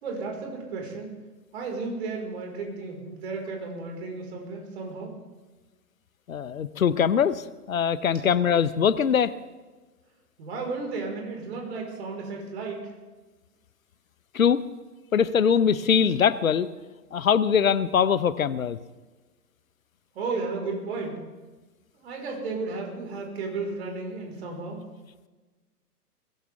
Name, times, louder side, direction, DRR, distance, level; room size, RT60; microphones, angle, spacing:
voice 1, 0.0-1.1 1.5-5.2 10.4-12.9 20.1-21.2 21.9-24.8, right 3 dB, 40° right, 1 dB, 4.9 m, -33 dB
voice 2, 6.3-9.3 14.3-14.6 15.1-16.7 17.1-18.8, left 7 dB, 60° left, 16 dB, 0.9 m, -22 dB
22.0 x 16.0 x 3.6 m, 1.2 s
figure-of-eight pair, 120°, 47 cm